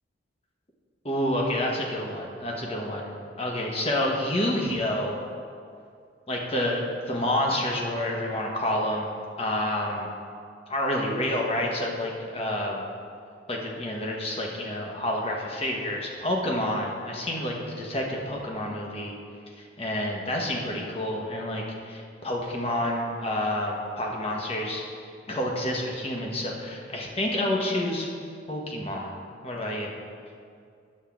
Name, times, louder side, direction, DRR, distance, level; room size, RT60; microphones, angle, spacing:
voice 1, 1.0-3.1 3.4-5.2 6.3-10.1 10.7-12.8 13.5-19.1 19.5-24.8 25.3-28.1 28.5-29.9, left 1 dB, 30° left, -1 dB, 1.1 m, -29 dB
9.7 x 3.6 x 7.1 m, 2.3 s
head